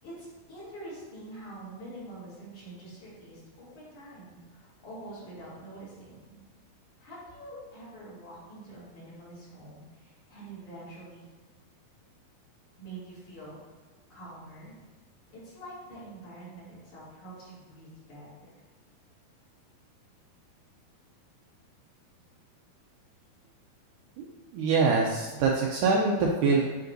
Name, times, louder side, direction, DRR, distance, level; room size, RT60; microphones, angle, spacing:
voice 1, 0.0-6.4 7.0-11.3 12.8-13.6 14.1-14.8 15.3-18.5, right 1 dB, 55° left, -9 dB, 3.7 m, -45 dB
voice 2, 24.2-26.6, right 4 dB, 90° right, -2 dB, 1.8 m, -25 dB
9.5 x 6.0 x 2.6 m, 1.3 s
omnidirectional pair, 4.4 m